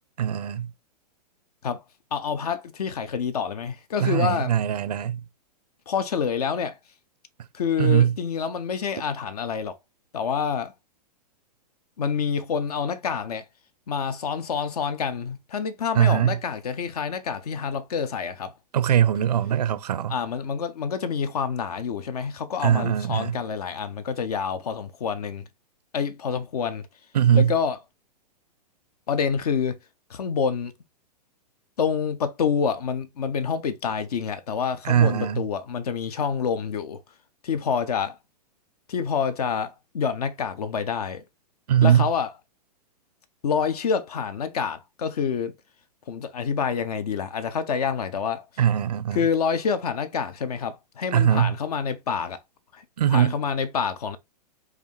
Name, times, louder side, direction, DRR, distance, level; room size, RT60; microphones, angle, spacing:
voice 1, 0.2-0.7 4.0-5.2 7.8-8.1 15.9-16.4 18.7-20.2 22.6-23.4 27.1-27.5 34.8-35.4 41.7-42.1 48.6-49.2 51.1-51.5 53.0-53.4, right 9 dB, 75° right, 0.4 m, -21 dB
voice 2, 2.1-4.6 5.9-6.8 7.5-9.8 10.1-10.7 12.0-13.5 13.9-18.5 20.1-25.5 25.9-26.9 27.3-27.8 29.1-29.8 30.1-30.7 31.8-37.0 37.4-38.2 38.9-41.2 41.8-42.3 43.4-45.5 46.1-48.4 49.1-52.4 52.7-52.8 53.1-54.2, left 6 dB, 70° left, 0.6 m, -27 dB
4.8 x 2.5 x 3.1 m
figure-of-eight pair, 110°, 21 cm